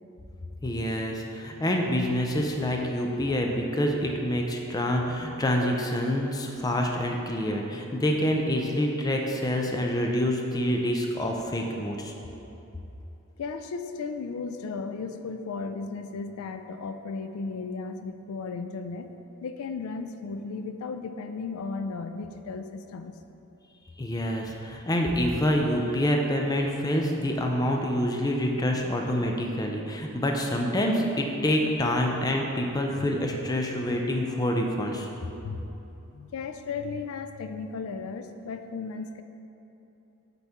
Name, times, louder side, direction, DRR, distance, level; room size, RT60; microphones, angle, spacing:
voice 1, 0.6-12.1 24.0-35.1, equal, 20° left, 1 dB, 0.4 m, -27 dB
voice 2, 13.4-19.1 19.4-23.2 33.0-33.1 35.4-35.6 36.1-39.2, left 4 dB, 85° left, 8 dB, 0.3 m, -35 dB
7.7 x 4.2 x 3.5 m, 3.0 s
head